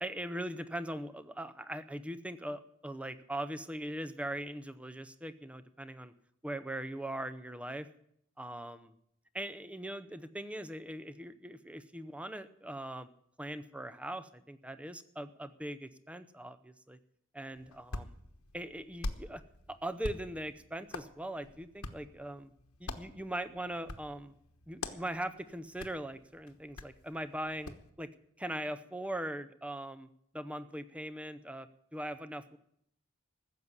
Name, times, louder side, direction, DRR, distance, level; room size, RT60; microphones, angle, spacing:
voice 1, 0.0-6.1 6.4-7.9 8.4-8.9 9.3-13.1 13.4-17.0 17.3-18.1 18.5-19.4 19.7-22.5 22.8-24.3 24.7-28.1 28.4-30.1 30.3-32.6, right 1 dB, 5° right, 12 dB, 0.6 m, -40 dB
Hands, 17.5-27.9, left 2 dB, 90° left, 1.2 m, -46 dB
15.0 x 7.3 x 9.7 m, 0.71 s
head